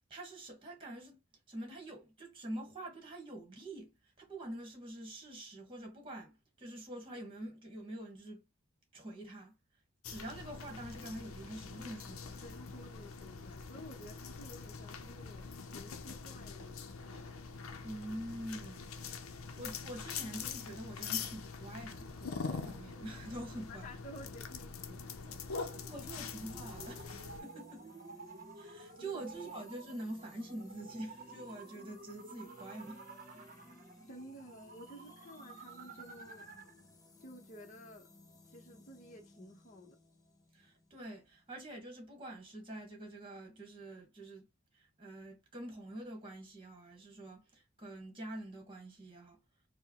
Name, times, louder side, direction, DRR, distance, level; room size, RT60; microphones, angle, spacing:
voice 1, 0.1-1.2 1.5-3.9 4.2-8.4 8.9-9.5 10.1-12.5 17.8-23.8 25.9-27.9 28.6-33.0 40.5-44.5 44.7-49.4, right 1 dB, 25° right, 1.2 m, -46 dB
sound 1, 10.0-27.4, left 5 dB, 80° left, 0.6 m, -44 dB
voice 2, 12.4-16.8 23.7-25.7 29.0-29.1 34.1-36.5 37.2-38.1 38.5-40.0, equal, 35° left, 0.9 m, -53 dB
sound 2, 24.1-36.8, right 3 dB, 40° right, 0.8 m, -53 dB
sound 3, 25.9-41.6, left 1 dB, 15° left, 0.6 m, -59 dB
4.6 x 2.1 x 2.9 m
head